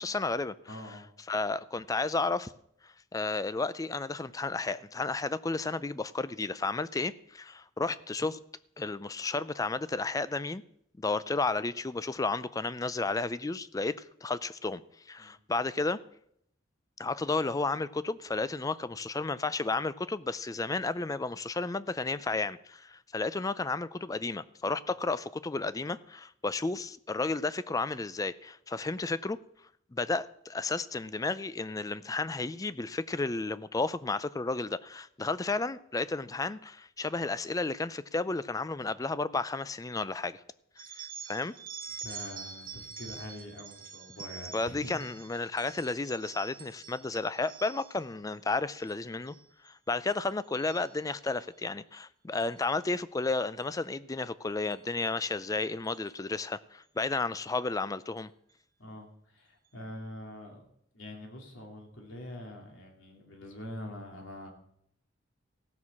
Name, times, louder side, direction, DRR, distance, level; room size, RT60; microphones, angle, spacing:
voice 1, 0.0-0.5 1.3-2.5 3.1-8.4 8.8-10.6 11.0-14.8 15.1-16.0 17.0-29.4 29.9-40.4 40.8-41.5 44.5-49.3 49.6-58.3, left 3 dB, 15° left, 0.4 m, -32 dB
voice 2, 0.7-1.1 15.2-15.4 42.0-45.2 58.8-64.5, left 1 dB, 80° left, 2.7 m, -44 dB
sound 1, 40.8-48.1 48.6-48.9 49.3-49.7 50.1-51.4 52.4-52.6 53.6-53.7 54.7-54.8 55.2-55.3 55.8-56.1, right 6 dB, 45° right, 1.2 m, -46 dB
16.0 x 6.3 x 7.2 m
head